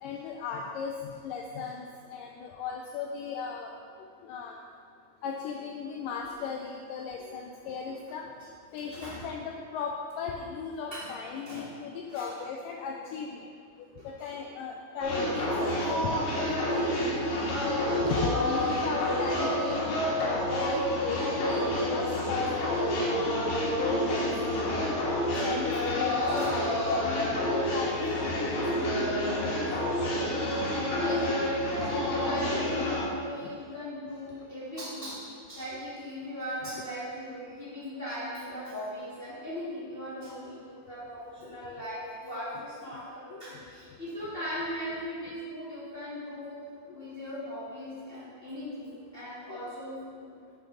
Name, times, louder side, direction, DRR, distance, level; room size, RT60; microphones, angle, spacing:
voice 1, 0.0-3.8 4.2-4.6 5.2-8.2 8.7-13.5 14.0-24.3 25.4-29.6 33.4-33.5 35.7-35.8 37.4-37.5 39.5-39.6 41.4-41.6 43.3-43.6 45.2-45.3 49.5-49.7, left 5 dB, 90° left, 1 dB, 1.9 m, -37 dB
voice 2, 8.9-9.2 10.9-11.1 11.4-11.7 12.1-12.3 14.0-14.3 15.7-15.8 16.7-16.8 17.3-17.6 25.3-25.5 26.1-26.5 31.0-46.6 46.9-50.3, equal, 40° left, -10 dB, 0.7 m, -39 dB
sound 1, 15.0-33.0, left 1 dB, 60° left, 2.4 m, -28 dB
9.2 x 6.7 x 3.9 m, 2.2 s
omnidirectional pair, 4.4 m